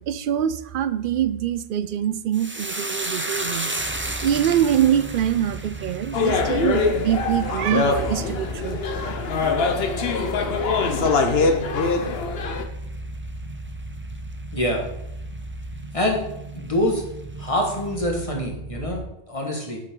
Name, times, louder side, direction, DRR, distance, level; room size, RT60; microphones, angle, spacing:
voice 1, 0.0-3.7 4.2-8.8, right 10 dB, 60° right, 0.6 m, -24 dB
sound 1, 2.3-10.9 11.2-11.9 12.2-12.4, right 2 dB, 15° right, 0.5 m, -34 dB
sound 2, 3.8-19.1, right 1 dB, 40° right, 1.2 m, -36 dB
sound 3, 6.1-12.6, left 4 dB, 70° left, 1.1 m, -23 dB
voice 2, 14.5-14.8 15.9-16.2 16.5-17.0 17.4-19.8, left 1 dB, 30° left, 1.8 m, -25 dB
8.5 x 7.6 x 3.8 m
omnidirectional pair, 1.1 m